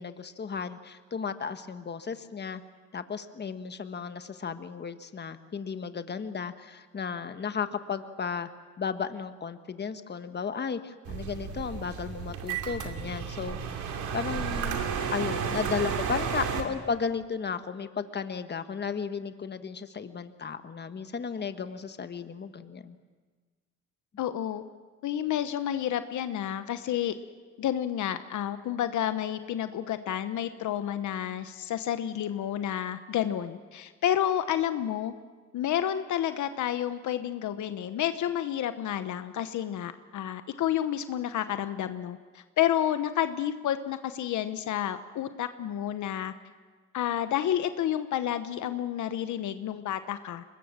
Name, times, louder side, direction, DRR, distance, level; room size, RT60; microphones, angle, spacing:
voice 1, 0.0-2.6 2.9-8.5 8.8-14.8 15.1-23.0, left 6 dB, 35° left, 10 dB, 1.3 m, -34 dB
sound 1, 11.1-16.6, right 7 dB, 85° right, 2.6 m, -32 dB
voice 2, 24.2-24.6 25.0-27.1 27.6-35.1 35.5-46.3 46.9-50.4, left 11 dB, 75° left, 11 dB, 1.0 m, -30 dB
23.5 x 20.5 x 7.3 m, 1.4 s
cardioid pair, 90°, 30 cm